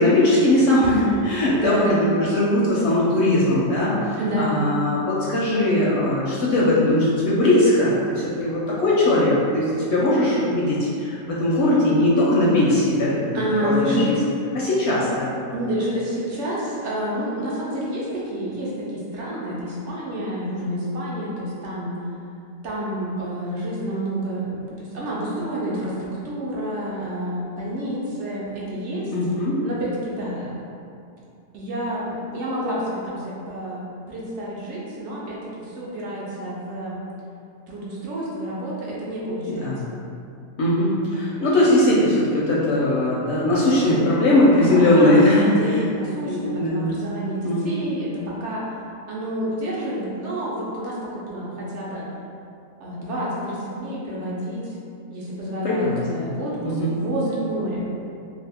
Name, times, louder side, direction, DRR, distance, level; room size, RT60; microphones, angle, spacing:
voice 1, 0.0-14.0 14.5-15.3 29.1-29.6 39.3-39.8 40.6-45.7 46.3-46.9 47.4-47.7 55.6-56.0 56.6-56.9, left 1 dB, 65° left, -6 dB, 0.7 m, -20 dB
voice 2, 1.5-2.1 4.2-4.5 13.3-14.1 15.5-21.9 22.6-29.1 29.6-30.6 31.5-37.0 37.7-39.7 44.6-48.6 49.1-52.1 52.8-54.8 55.1-57.9, right 1 dB, 65° right, -6 dB, 0.8 m, -29 dB
2.7 x 2.4 x 3.4 m, 2.6 s
omnidirectional pair, 1.5 m